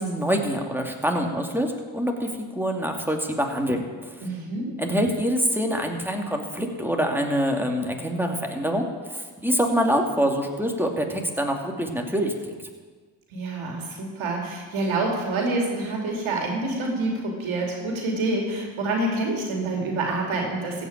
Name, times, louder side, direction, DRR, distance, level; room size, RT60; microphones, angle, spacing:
voice 1, 0.0-4.2 4.8-12.7, equal, 5° right, 2 dB, 2.5 m, -25 dB
voice 2, 4.2-4.8 13.3-20.9, right 2 dB, 80° right, 0 dB, 2.9 m, -27 dB
15.0 x 5.5 x 8.7 m, 1.5 s
supercardioid pair, 40°, 47 cm